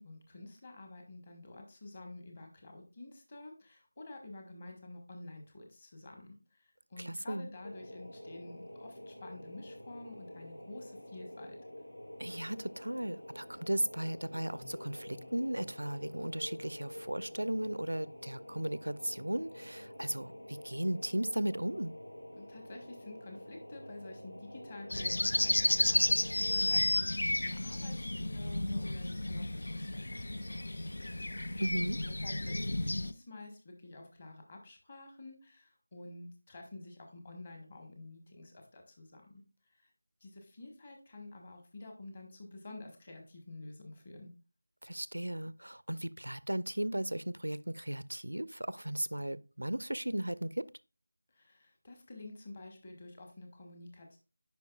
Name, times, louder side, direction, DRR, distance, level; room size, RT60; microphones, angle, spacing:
voice 1, 0.0-11.6 22.3-31.6 31.9-39.9 40.2-44.3 51.3-54.2, left 2 dB, 30° left, 1.2 m, -50 dB
voice 2, 7.0-7.5 12.2-21.9 31.6-32.0 44.8-50.7, right 1 dB, 70° right, 0.4 m, -36 dB
sound 1, 7.6-26.7, left 1 dB, 70° left, 2.1 m, -48 dB
sound 2, 24.9-33.1, left 1 dB, 50° left, 0.4 m, -32 dB
9.2 x 5.3 x 2.3 m
figure-of-eight pair, 165°, 0 cm